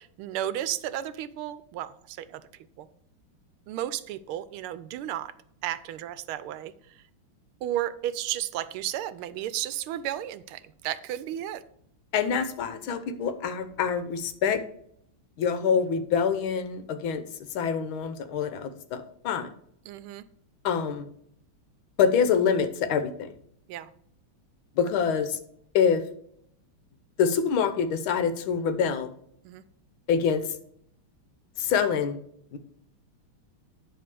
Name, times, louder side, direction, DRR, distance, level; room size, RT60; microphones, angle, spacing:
voice 1, 0.0-2.4 2.8-2.9 3.7-5.3 5.6-6.7 7.6-11.6 19.9-20.2 23.7-23.9 29.4-29.6, right 12 dB, 80° right, 14 dB, 1.4 m, -33 dB
voice 2, 12.1-14.6 15.4-17.2 17.5-19.5 20.6-21.1 22.0-23.3 24.8-25.4 25.7-26.0 27.2-29.1 30.1-30.4 31.6-32.2 32.5-32.6, left 7 dB, 70° left, 10 dB, 1.6 m, -25 dB
10.0 x 3.6 x 6.8 m, 0.68 s
omnidirectional pair, 2.4 m